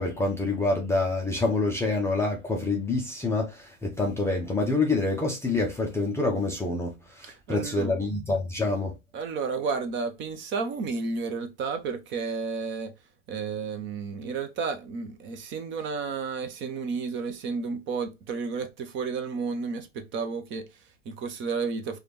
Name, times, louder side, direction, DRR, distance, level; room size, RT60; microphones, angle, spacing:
voice 1, 0.0-9.0, left 3 dB, 5° left, 0.5 m, -27 dB
voice 2, 7.3-8.1 9.1-22.0, right 5 dB, 30° right, 0.7 m, -32 dB
4.9 x 2.4 x 2.9 m
hypercardioid pair, 100°, 40 cm